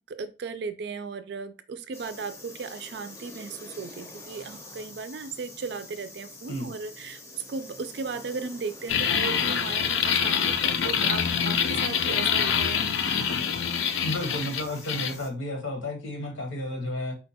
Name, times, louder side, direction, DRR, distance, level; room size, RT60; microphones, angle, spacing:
voice 1, 0.1-13.2, right 4 dB, 55° right, 0.4 m, -36 dB
sound 1, 1.9-15.3, left 2 dB, 15° left, 0.6 m, -46 dB
sound 2, 8.9-15.1, left 7 dB, 70° left, 0.5 m, -25 dB
voice 2, 14.0-17.2, left 1 dB, 90° left, 1.0 m, -32 dB
4.3 x 2.2 x 4.1 m
head